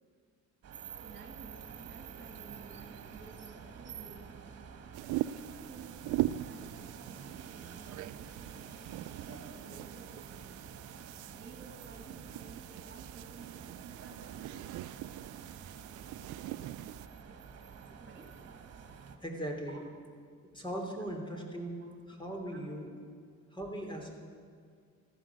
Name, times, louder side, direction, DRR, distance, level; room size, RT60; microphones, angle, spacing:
sound 1, 0.6-19.2, right 6 dB, 55° right, 1.6 m, -49 dB
voice 1, 1.0-4.4 5.2-8.7 9.2-10.7 11.2-14.8 18.0-18.4 19.7-19.8 21.8-21.9 22.5-22.6, right 4 dB, 40° right, 2 dB, 2.5 m, -53 dB
sound 2, 4.9-17.1, right 14 dB, 80° right, 0.5 m, -41 dB
voice 2, 19.2-19.8 20.4-22.9 23.5-24.1, right 1 dB, 15° left, 2 dB, 3.1 m, -39 dB
14.5 x 11.0 x 8.3 m, 2.1 s
cardioid pair, 90°, 30 cm